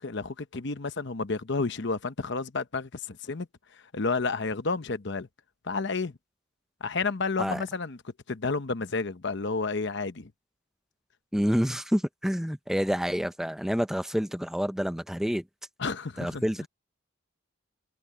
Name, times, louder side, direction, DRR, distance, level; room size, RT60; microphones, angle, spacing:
voice 1, 0.0-3.5 3.7-5.3 5.6-6.1 6.8-8.0 8.3-10.3 15.8-16.7, left 4 dB, 60° left, 0.9 m, -31 dB
voice 2, 11.3-15.4 16.2-16.7, equal, ahead, 0.6 m, -28 dB
head